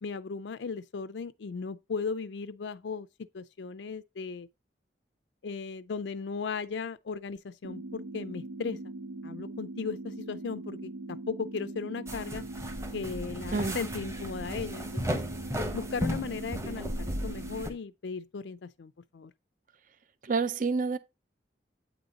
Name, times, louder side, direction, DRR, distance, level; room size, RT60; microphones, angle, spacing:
voice 1, 0.0-3.1 3.3-4.5 5.4-8.8 9.2-12.4 12.9-15.2 15.7-19.3, left 5 dB, 80° left, 0.4 m, -37 dB
sound 1, 7.6-17.6, right 2 dB, 85° right, 0.7 m, -41 dB
sound 2, 12.1-17.7, equal, 15° right, 1.1 m, -35 dB
voice 2, 20.2-21.0, right 4 dB, 45° right, 0.5 m, -28 dB
8.6 x 4.1 x 4.9 m
head